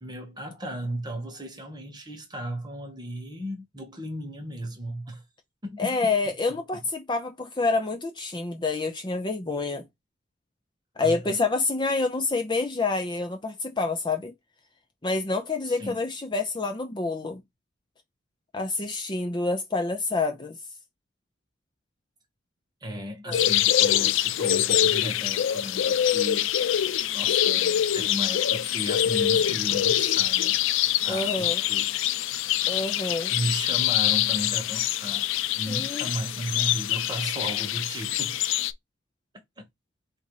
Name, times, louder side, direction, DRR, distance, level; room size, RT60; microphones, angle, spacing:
voice 1, 0.0-5.2 5.6-6.0 6.7-6.8 11.0-11.4 15.6-16.0 22.8-26.5 27.1-30.6 31.0-32.0 33.3-35.3 35.6-38.4, equal, 20° right, 1.2 m, -35 dB
voice 2, 5.8-9.8 11.0-14.3 15.0-17.4 18.5-20.6 23.3-23.4 31.1-31.6 32.7-33.3 35.7-36.1, left 3 dB, 25° left, 0.6 m, -27 dB
sound 1, 23.3-38.7, left 11 dB, 70° left, 0.3 m, -24 dB
4.0 x 2.6 x 4.7 m
head